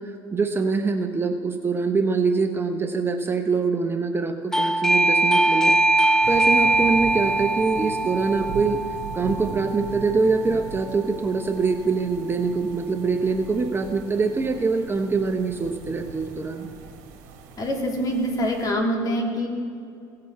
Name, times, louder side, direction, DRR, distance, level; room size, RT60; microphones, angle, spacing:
voice 1, 0.0-8.8 9.1-16.7, right 4 dB, 25° right, 6 dB, 0.9 m, -24 dB
Doorbell, 4.5-11.0, right 2 dB, 5° left, 0.8 m, -22 dB
sound 1, 6.2-18.7, right 5 dB, 85° right, 1.5 m, -40 dB
voice 2, 17.6-19.5, equal, 40° left, -1 dB, 3.1 m, -25 dB
17.5 x 6.8 x 4.7 m, 2.4 s
supercardioid pair, 80°, 10 cm